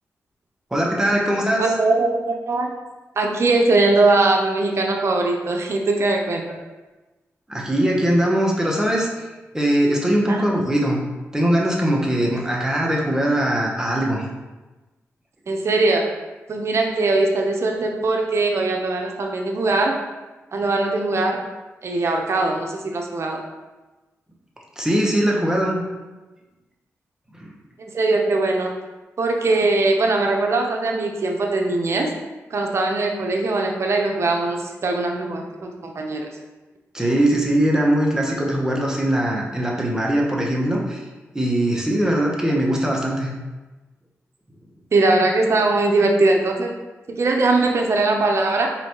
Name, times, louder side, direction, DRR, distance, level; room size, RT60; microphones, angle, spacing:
voice 1, 0.7-1.7 7.5-9.3 9.5-11.0 11.3-14.3 24.8-25.8 27.3-27.5 36.9-41.0 41.3-43.3, right 1 dB, 10° right, -2 dB, 1.0 m, -21 dB
voice 2, 1.6-2.7 3.2-6.6 10.3-10.4 15.5-16.1 16.5-20.0 20.5-21.4 21.8-23.4 27.8-28.7 29.2-32.1 32.5-36.3 42.5-42.6 44.9-46.7 47.1-48.7, right 2 dB, 55° right, 1 dB, 0.7 m, -21 dB
4.1 x 3.2 x 3.0 m, 1.2 s
cardioid pair, 55°, 5 cm